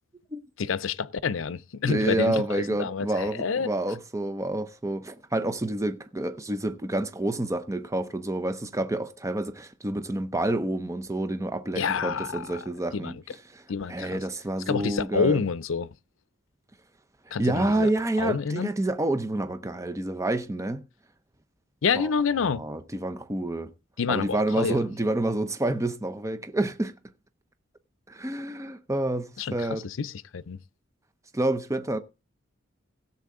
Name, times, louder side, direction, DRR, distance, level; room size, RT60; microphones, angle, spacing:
voice 1, 0.6-3.7 11.7-12.6 12.9-13.2 13.7-14.2 14.7-15.9 17.3-17.9 18.2-18.7 21.8-22.6 24.0-24.8 29.4-29.6 29.8-30.6, left 5 dB, 80° left, 0.6 m, -28 dB
voice 2, 1.9-13.1 13.5-13.6 13.9-15.4 17.4-20.8 21.9-22.1 22.5-23.7 24.1-26.9 28.1-29.9 31.3-32.0, right 1 dB, 15° right, 0.7 m, -28 dB
16.5 x 7.2 x 3.8 m
head